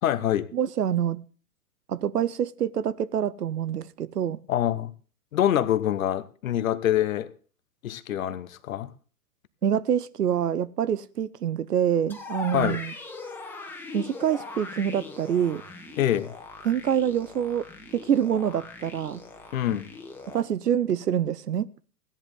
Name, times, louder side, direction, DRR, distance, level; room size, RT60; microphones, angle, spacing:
voice 1, 0.0-0.5 4.5-4.9 5.3-7.3 7.8-8.9 12.5-12.8 16.0-16.3 19.5-19.9, left 11 dB, 55° left, 1.1 m, -25 dB
voice 2, 0.5-1.2 1.9-4.4 9.6-12.9 13.9-15.6 16.6-17.7 17.9-19.2 20.3-21.7, right 9 dB, 75° right, 0.9 m, -26 dB
sound 1, 12.1-20.4, left 3 dB, 5° left, 1.7 m, -40 dB
16.0 x 10.5 x 3.8 m
figure-of-eight pair, 115°, 47 cm